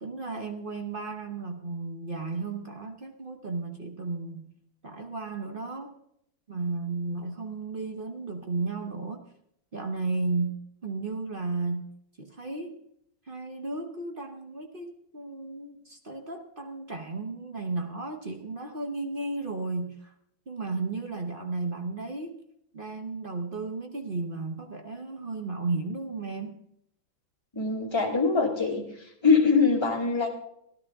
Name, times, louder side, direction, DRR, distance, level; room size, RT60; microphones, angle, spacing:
voice 1, 0.0-4.5 4.8-6.0 6.5-9.3 9.7-11.9 12.2-12.8 13.3-20.1 20.5-22.3 22.7-26.6, right 3 dB, 40° right, 3 dB, 0.8 m, -34 dB
voice 2, 27.5-30.3, left 4 dB, 15° left, -1 dB, 2.2 m, -23 dB
16.5 x 11.0 x 3.6 m, 0.73 s
omnidirectional pair, 2.2 m